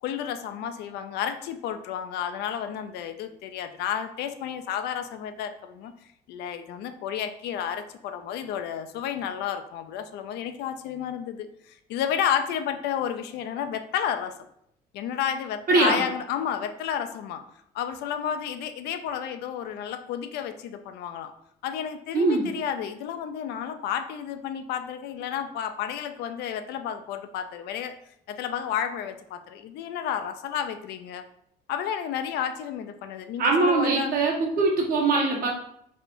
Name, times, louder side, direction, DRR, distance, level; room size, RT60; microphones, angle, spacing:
voice 1, 0.0-5.9 6.3-14.3 14.9-17.4 17.7-21.3 21.6-28.0 28.3-31.3 31.7-34.1, left 9 dB, 80° left, 9 dB, 0.4 m, -31 dB
voice 2, 15.7-16.0 22.1-22.5 33.4-35.5, right 3 dB, 60° right, -1 dB, 1.2 m, -22 dB
3.3 x 2.5 x 4.3 m, 0.72 s
cardioid pair, 110°, 17 cm